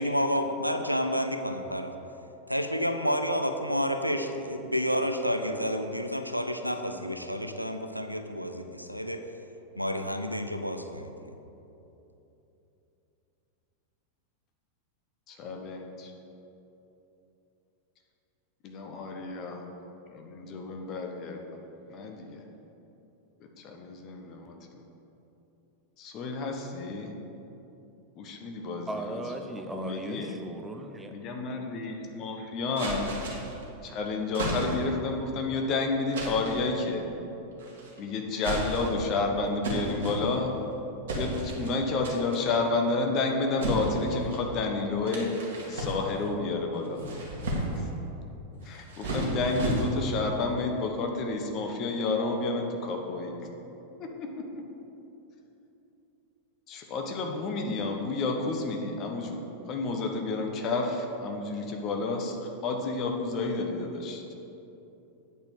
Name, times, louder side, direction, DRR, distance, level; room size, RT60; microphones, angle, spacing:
voice 1, 0.0-1.9 2.5-9.2 9.8-11.1, equal, 90° right, 7 dB, 0.5 m, -30 dB
voice 2, 15.3-16.1 18.6-19.6 20.1-21.4 21.9-22.4 23.6-24.5 26.0-27.1 28.2-29.2 29.7-30.3 31.1-33.1 33.8-37.0 38.0-40.5 41.1-45.3 45.7-47.0 47.7-47.9 48.6-53.3 54.2-54.3 56.7-64.3, left 3 dB, 35° left, 3 dB, 1.1 m, -30 dB
voice 3, 28.9-31.1, right 2 dB, 10° right, 5 dB, 0.7 m, -37 dB
sound 1, 32.8-33.6 34.3-35.0 36.1-36.6 37.6-38.0 38.4-39.1 39.6-40.6 41.1-41.7 42.0-42.5 43.6-44.5 45.1-46.3 46.8-47.9 48.6-50.2, right 1 dB, 60° right, 1.7 m, -33 dB
8.4 x 4.4 x 7.2 m, 3.0 s
figure-of-eight pair, 90°, 0 cm